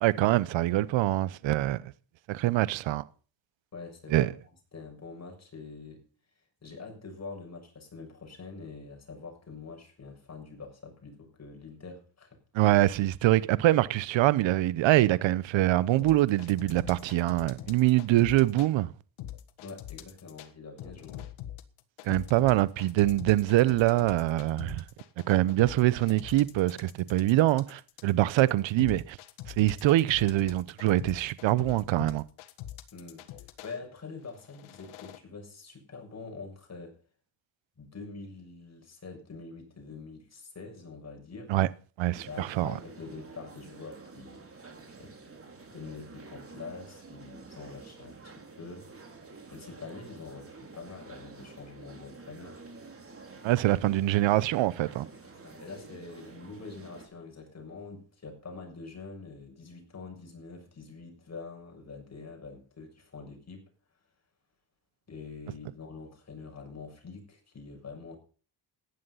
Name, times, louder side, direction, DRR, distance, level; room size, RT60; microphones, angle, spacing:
voice 1, 0.0-1.8 2.3-3.1 4.1-4.3 12.5-18.9 22.0-24.8 25.3-29.2 29.6-32.2 41.5-41.7 42.0-42.7 53.4-55.1, right 16 dB, 70° right, 0.9 m, -24 dB
voice 2, 3.7-6.0 6.6-12.4 19.6-21.3 32.9-37.0 37.8-41.5 42.2-44.7 45.0-45.1 45.7-48.9 49.5-52.6 55.4-63.7 65.1-68.2, left 4 dB, 35° left, 6.8 m, -45 dB
sound 1, 16.0-18.7 19.2-20.5 20.8-33.8 34.3-35.2, left 12 dB, 80° left, 1.7 m, -43 dB
sound 2, 42.1-57.1, right 4 dB, 30° right, 4.4 m, -49 dB
15.0 x 11.0 x 5.7 m
supercardioid pair, 80°, 47 cm